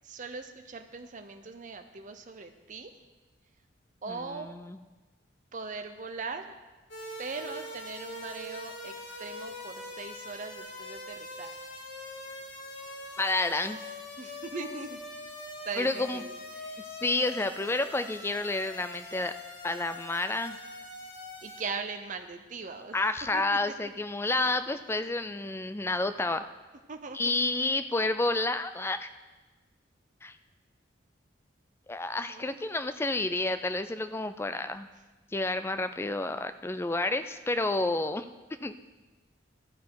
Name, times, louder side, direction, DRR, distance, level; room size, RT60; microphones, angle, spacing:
voice 1, 0.0-2.9 4.0-4.5 5.5-6.6 7.2-8.9 9.2-11.7 14.2-15.0 15.6-16.9 21.4-23.0 23.3-23.4 24.3-24.5 26.9-27.4 32.3-32.6, right 4 dB, 40° right, 6 dB, 0.6 m, -40 dB
voice 2, 4.1-4.8 13.2-13.9 15.8-16.2 16.9-19.3 19.6-20.6 22.9-26.4 27.1-29.1 30.2-30.4 31.9-34.9 35.3-38.2 38.6-38.7, left 2 dB, 10° left, 11 dB, 0.3 m, -30 dB
sound 1, 6.9-21.6, left 2 dB, 70° left, 1.9 m, -43 dB
12.5 x 8.1 x 4.7 m, 1.2 s
head